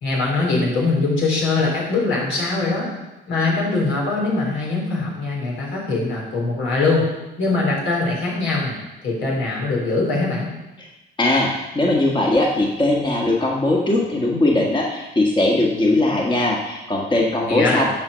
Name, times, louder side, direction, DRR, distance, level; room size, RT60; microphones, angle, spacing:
voice 1, 0.0-2.9 3.3-7.1 7.4-8.8 9.0-10.5 17.5-17.8, left 3 dB, 80° left, -3 dB, 3.9 m, -22 dB
voice 2, 11.2-17.8, left 2 dB, 25° left, -2 dB, 1.5 m, -20 dB
9.5 x 5.0 x 6.9 m, 1.0 s
cardioid pair, 90°, 20 cm